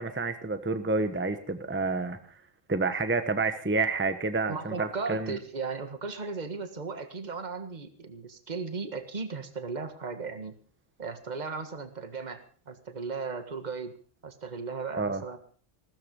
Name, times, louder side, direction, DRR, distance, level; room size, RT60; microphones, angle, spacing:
voice 1, 0.0-2.2 2.7-5.4 15.0-15.2, right 3 dB, 10° right, 9 dB, 1.1 m, -29 dB
voice 2, 4.5-10.6 11.0-14.0 14.2-15.4, right 4 dB, 35° right, 8 dB, 1.8 m, -36 dB
18.0 x 13.5 x 5.3 m, 0.42 s
omnidirectional pair, 1.3 m